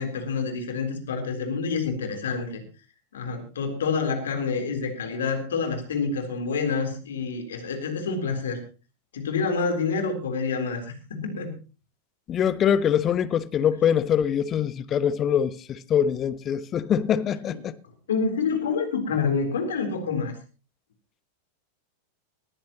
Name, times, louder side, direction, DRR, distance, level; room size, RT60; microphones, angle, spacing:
voice 1, 0.0-2.6 3.1-8.6 9.1-11.5 17.5-17.6 18.1-20.3, left 5 dB, 65° left, 3.8 m, -27 dB
voice 2, 12.3-17.7, left 9 dB, 30° left, 1.1 m, -23 dB
20.5 x 14.5 x 3.0 m
figure-of-eight pair, 90°, 0 cm